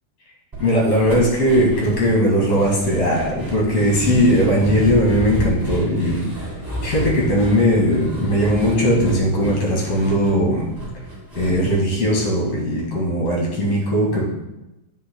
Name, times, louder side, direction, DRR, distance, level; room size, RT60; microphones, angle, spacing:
sound 1, 0.5-12.8 13.1-13.2 13.5-13.6, right 1 dB, 10° right, 0.9 m, -30 dB
voice 1, 0.6-6.2 6.8-10.7 11.4-14.3, equal, 50° left, -3 dB, 2.5 m, -19 dB
9.3 x 8.2 x 2.2 m, 0.98 s
omnidirectional pair, 4.3 m